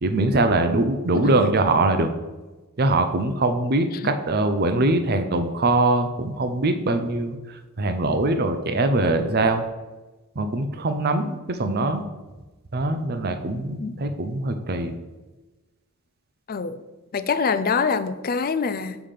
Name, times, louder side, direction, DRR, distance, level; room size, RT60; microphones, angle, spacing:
voice 1, 0.0-2.1 2.8-7.4 7.8-9.6 10.4-12.0 12.7-14.9, right 2 dB, 45° right, 0.6 m, -22 dB
voice 2, 17.1-19.0, left 5 dB, 40° left, 0.4 m, -25 dB
7.0 x 5.0 x 5.7 m
head